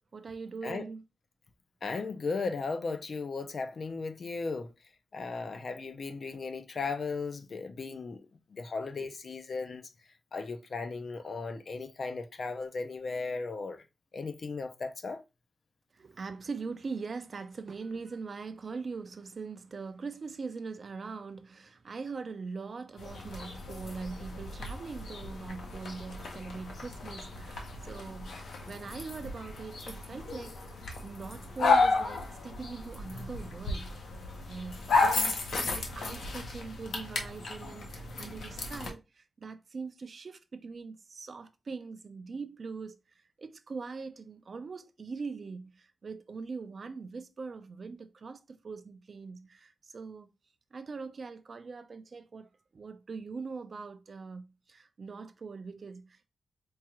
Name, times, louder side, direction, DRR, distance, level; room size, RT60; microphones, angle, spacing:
voice 1, 0.1-1.0 9.0-9.1 15.9-33.9 34.5-43.0 43.4-50.3 50.7-56.3, right 4 dB, 40° right, 0.3 m, -42 dB
voice 2, 1.8-4.7 5.1-8.2 8.5-9.8 10.3-13.9 14.1-15.2, left 4 dB, 45° left, 0.4 m, -36 dB
sound 1, 23.0-38.9, left 3 dB, 80° left, 0.8 m, -33 dB
4.5 x 2.3 x 2.9 m
wide cardioid pair, 175°, 0 cm